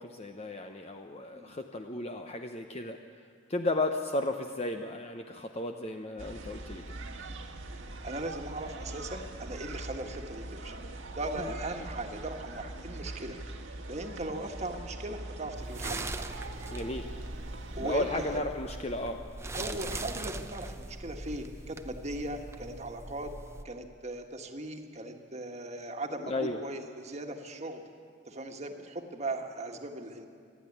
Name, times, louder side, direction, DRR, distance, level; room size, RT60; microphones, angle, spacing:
voice 1, 0.0-3.0 3.5-7.0 11.4-11.5 16.7-17.1 17.8-19.2 26.2-26.6, left 2 dB, 30° left, 5 dB, 0.7 m, -34 dB
sound 1, 6.2-18.4, right 2 dB, 75° right, 1.5 m, -42 dB
voice 2, 8.0-10.8 11.2-13.4 13.9-16.3 17.7-18.4 19.5-23.3 23.6-27.8 28.3-30.3, right 2 dB, 35° right, 4 dB, 1.5 m, -38 dB
sound 2, 15.6-23.6, right 2 dB, 15° right, 0.7 m, -41 dB
27.0 x 11.0 x 9.9 m, 2.2 s
head